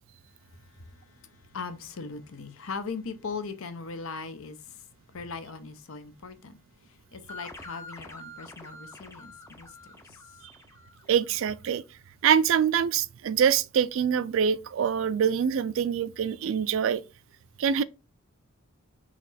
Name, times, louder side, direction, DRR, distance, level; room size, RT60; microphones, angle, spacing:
voice 1, 0.4-10.4, left 4 dB, 75° left, 0.7 m, -40 dB
sound 1, 7.3-11.6, left 1 dB, 15° left, 0.5 m, -47 dB
voice 2, 11.1-11.8 12.2-17.0 17.6-17.8, right 8 dB, 65° right, 0.3 m, -24 dB
4.1 x 3.0 x 4.0 m
head